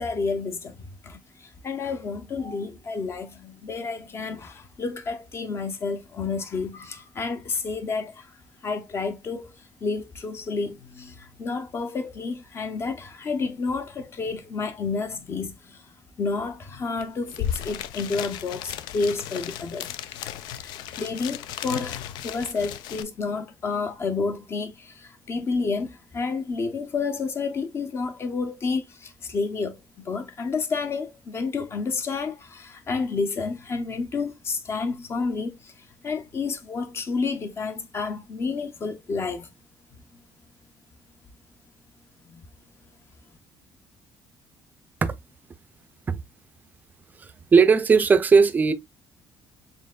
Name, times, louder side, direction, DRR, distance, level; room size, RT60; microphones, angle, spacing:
voice 1, 0.0-8.3 8.6-9.5 9.8-15.9 16.2-20.2 20.5-20.7 21.0-39.5 42.2-42.4, left 4 dB, 35° left, 0.7 m, -30 dB
sound 1, 17.0-17.1 17.3-23.0, left 10 dB, 90° left, 0.4 m, -35 dB
voice 2, 47.2-48.7, right 5 dB, 25° right, 0.4 m, -18 dB
4.4 x 3.6 x 2.2 m
cardioid pair, 145°, 7 cm